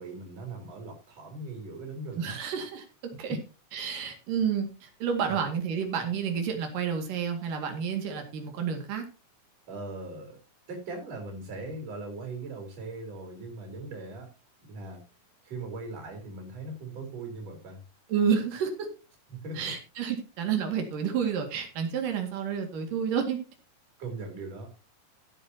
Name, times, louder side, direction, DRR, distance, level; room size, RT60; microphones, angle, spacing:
voice 1, 0.0-2.4 3.3-3.4 5.2-5.4 9.7-10.4 10.7-14.3 14.7-15.0 15.4-17.8 19.3-19.7 24.0-24.8, right 2 dB, 50° right, 2 dB, 4.9 m, -39 dB
voice 2, 2.2-2.9 3.2-3.4 3.7-9.0 18.1-18.7 19.6-23.4, right 7 dB, 90° right, 4 dB, 3.8 m, -30 dB
16.0 x 9.1 x 2.8 m, 0.32 s
omnidirectional pair, 3.7 m